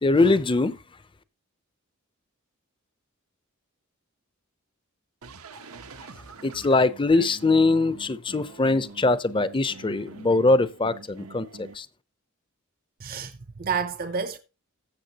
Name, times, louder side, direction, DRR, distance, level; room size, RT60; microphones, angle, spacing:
voice 1, 0.0-0.8 6.0-6.1 6.4-11.9, left 3 dB, 25° left, 0.6 m, -22 dB
sound 1, 5.2-11.8, right 4 dB, 90° right, 1.0 m, -46 dB
voice 2, 13.0-14.4, right 6 dB, 45° right, 0.6 m, -30 dB
14.5 x 7.0 x 2.9 m
head